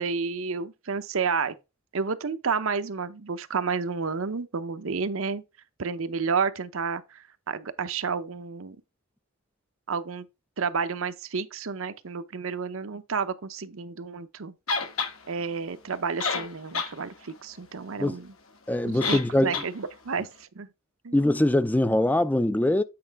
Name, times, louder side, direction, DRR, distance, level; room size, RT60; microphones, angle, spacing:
voice 1, 0.0-1.5 1.9-5.4 5.8-8.8 9.9-10.3 10.6-14.5 15.3-18.3 18.8-20.7 21.0-21.2, right 5 dB, 70° right, 0.7 m, -31 dB
sound 1, 14.7-15.1 15.9-16.0 16.2-16.9 17.3-17.4 19.0-19.3 19.5-19.7, left 4 dB, 70° left, 1.6 m, -28 dB
voice 2, 18.7-19.5 21.1-22.8, left 1 dB, 10° left, 0.4 m, -22 dB
8.7 x 4.8 x 3.4 m
head